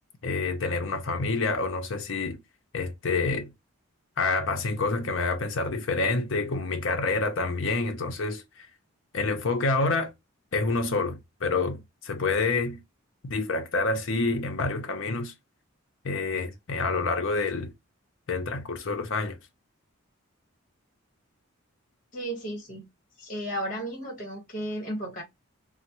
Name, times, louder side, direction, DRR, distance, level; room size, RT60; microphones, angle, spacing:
voice 1, 0.2-2.4 2.7-3.5 4.2-8.7 9.1-10.1 10.5-12.8 13.2-15.3 16.0-17.7 18.3-19.4, left 3 dB, 60° left, 0.6 m, -28 dB
voice 2, 22.1-22.9 23.2-25.2, right 1 dB, 35° left, 1.3 m, -34 dB
3.0 x 2.1 x 2.9 m
head